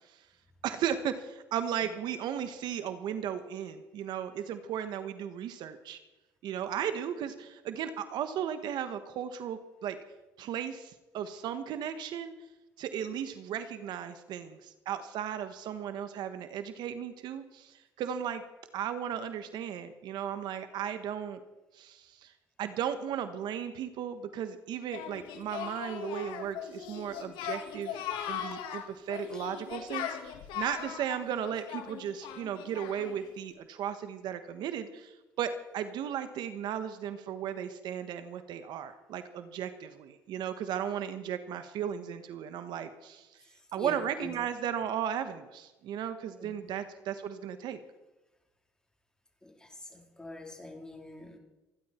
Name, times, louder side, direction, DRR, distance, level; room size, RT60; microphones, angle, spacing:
voice 1, 0.6-6.0 6.4-10.0 10.4-12.3 12.8-18.4 18.7-21.4 21.7-22.3 22.6-43.3 43.7-47.8, right 9 dB, 70° right, 10 dB, 1.3 m, -36 dB
Singing, 24.9-33.3, left 9 dB, 85° left, 2.2 m, -39 dB
voice 2, 43.4-44.3 46.4-46.7 49.4-51.4, left 2 dB, 10° left, 1 dB, 3.9 m, -45 dB
28.0 x 11.0 x 4.4 m, 1.1 s
cardioid pair, 95°, 8 cm